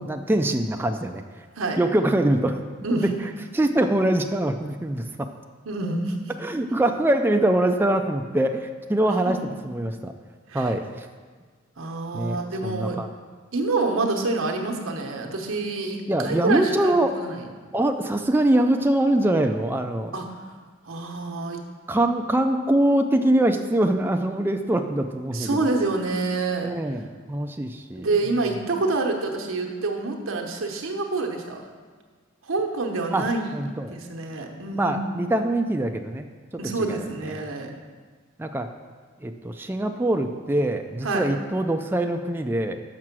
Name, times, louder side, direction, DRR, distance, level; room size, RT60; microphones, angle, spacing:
voice 1, 0.0-1.4 1.8-2.6 2.9-5.3 6.4-9.4 9.6-10.1 10.5-11.1 12.1-13.1 16.1-17.2 17.7-20.1 21.9-25.6 26.6-28.1 33.1-33.3 33.5-33.9 34.8-36.3 36.9-37.5 38.4-38.7 39.2-42.8, right 1 dB, 10° right, 5 dB, 0.3 m, -23 dB
voice 2, 2.8-3.1 5.6-6.2 9.2-9.4 10.5-10.7 11.8-13.0 13.5-17.5 20.1-20.3 20.8-21.6 25.3-26.7 28.0-31.7 32.5-33.4 33.9-35.0 36.6-37.7 41.0-41.3, right 3 dB, 85° right, 2 dB, 1.0 m, -27 dB
6.6 x 6.1 x 6.0 m, 1.5 s
head